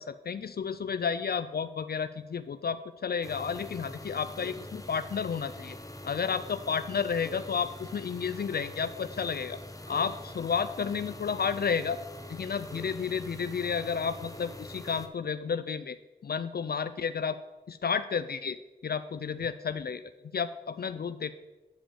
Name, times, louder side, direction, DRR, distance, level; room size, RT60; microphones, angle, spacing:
voice 1, 0.0-5.8 6.0-9.6 9.9-12.0 12.3-16.0 16.2-17.4 17.7-18.6 18.8-21.3, left 6 dB, 60° left, 12 dB, 0.4 m, -32 dB
sound 1, 3.2-15.1, left 1 dB, 20° left, 1.1 m, -44 dB
9.0 x 5.0 x 6.9 m, 1.1 s
cardioid pair, 40°, 18 cm